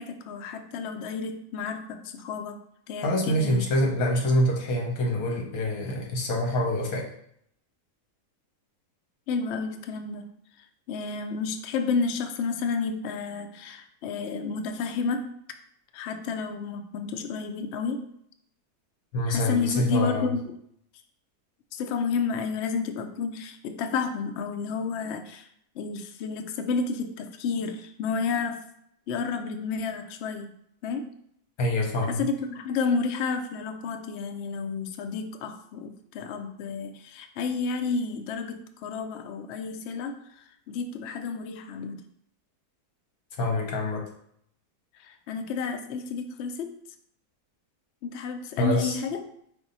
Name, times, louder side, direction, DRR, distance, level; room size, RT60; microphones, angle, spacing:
voice 1, 0.0-2.6 2.9-3.6 9.3-10.3 10.9-15.2 15.9-18.1 19.3-20.5 21.7-25.5 25.8-28.6 29.1-30.5 30.8-31.1 32.1-42.0 45.0-46.7 48.0-49.2, left 5 dB, 85° left, 6 dB, 0.5 m, -31 dB
voice 2, 3.0-7.1 19.1-20.3 31.6-32.3 43.4-44.0 48.6-49.0, left 1 dB, 65° left, 0 dB, 1.4 m, -25 dB
5.0 x 2.6 x 3.9 m, 0.70 s
omnidirectional pair, 1.7 m